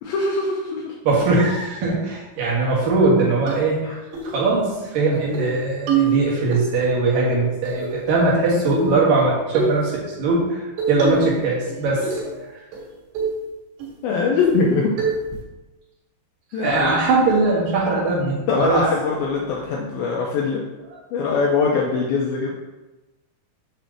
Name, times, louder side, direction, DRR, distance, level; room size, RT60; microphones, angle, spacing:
voice 1, 0.0-1.0 3.8-4.0 14.0-15.0 16.5-17.2 18.5-20.6 21.1-22.5, left 4 dB, 90° left, -2 dB, 2.1 m, -22 dB
voice 2, 1.0-4.0 4.3-12.1 16.6-18.8, right 3 dB, 60° right, -4 dB, 2.8 m, -20 dB
sound 1, 3.5-3.6 4.1-4.3 4.7-4.8 5.1-5.5 5.9-6.6 7.7-8.3 8.7-9.0 9.5-9.8 10.8-11.4 11.7-12.4 12.7-12.8 13.2-13.4 13.8-13.9 14.4-14.7 15.0-15.4, right 3 dB, 75° right, 3.9 m, -24 dB
7.9 x 3.3 x 6.3 m, 1.1 s
omnidirectional pair, 5.1 m